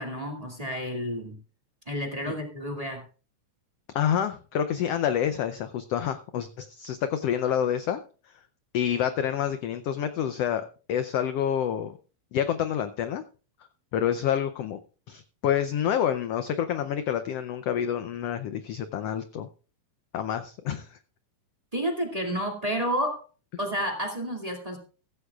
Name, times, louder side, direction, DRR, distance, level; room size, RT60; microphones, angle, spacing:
voice 1, 0.0-1.4 1.9-3.0 21.7-23.2 23.6-24.8, equal, 15° right, 3 dB, 1.8 m, -30 dB
voice 2, 3.9-8.0 8.7-12.0 12.3-13.2 13.9-14.8 15.1-19.5 20.1-21.0, left 9 dB, 80° left, 10 dB, 1.4 m, -28 dB
16.0 x 14.5 x 2.4 m, 0.37 s
omnidirectional pair, 3.6 m